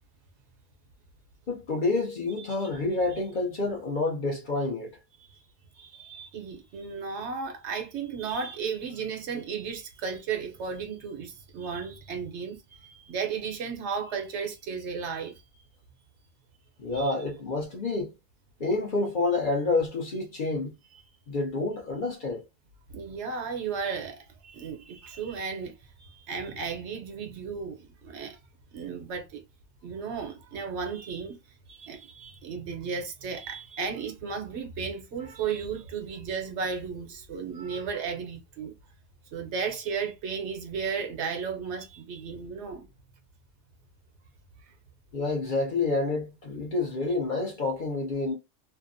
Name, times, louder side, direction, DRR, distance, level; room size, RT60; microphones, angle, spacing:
voice 1, 1.5-4.9 16.8-18.1 18.6-20.7 21.3-22.4 45.1-48.3, left 3 dB, 45° left, 0.8 m, -28 dB
voice 2, 5.7-15.4 16.9-17.1 22.9-25.7 26.0-28.4 28.7-29.4 29.8-31.4 31.7-38.7 39.3-42.9, right 6 dB, 70° right, 0.9 m, -34 dB
2.7 x 2.1 x 2.5 m
omnidirectional pair, 1.3 m